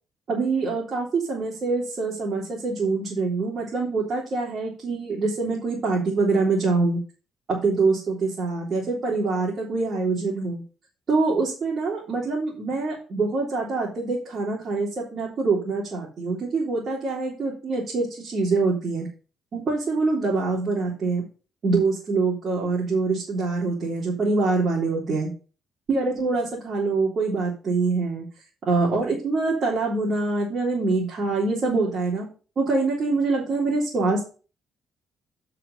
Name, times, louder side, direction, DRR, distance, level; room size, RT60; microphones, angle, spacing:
voice 1, 0.3-7.0 7.5-10.6 11.1-19.1 19.5-21.2 21.6-25.3 25.9-28.3 28.6-32.3 32.5-34.2, right 3 dB, 55° right, -5 dB, 3.4 m, -25 dB
8.1 x 5.8 x 5.4 m, 0.36 s
hypercardioid pair, 55°, 0 cm